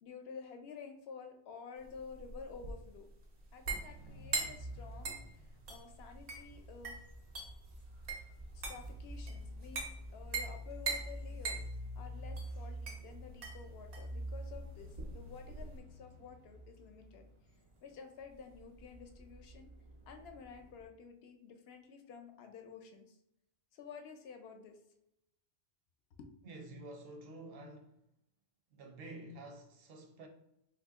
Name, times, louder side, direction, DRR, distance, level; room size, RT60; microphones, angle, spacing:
voice 1, 0.0-3.1 3.5-5.2 5.7-7.0 8.5-11.6 12.0-17.3 17.8-19.7 20.1-23.1 23.7-24.8 26.2-26.3, left 6 dB, 75° left, 0.8 m, -51 dB
sound 1, 1.8-15.8, right 4 dB, 85° right, 1.1 m, -42 dB
sound 2, 3.9-20.8, equal, 45° right, 0.4 m, -48 dB
voice 2, 26.4-28.0 28.7-30.3, right 2 dB, 70° right, 0.8 m, -49 dB
2.8 x 2.6 x 3.5 m
omnidirectional pair, 1.1 m